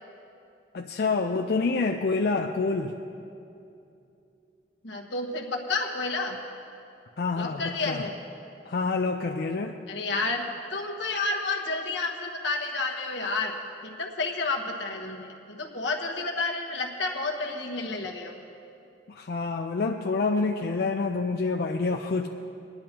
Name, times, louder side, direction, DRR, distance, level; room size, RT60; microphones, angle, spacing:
voice 1, 0.7-3.0 7.2-8.0 8.7-9.8 19.1-22.3, left 4 dB, 55° left, 3 dB, 0.4 m, -27 dB
voice 2, 4.8-6.4 7.4-8.1 9.9-10.4 10.7-13.6 13.8-18.4, left 3 dB, 85° left, 1 dB, 1.2 m, -30 dB
20.5 x 10.5 x 2.9 m, 2.7 s
head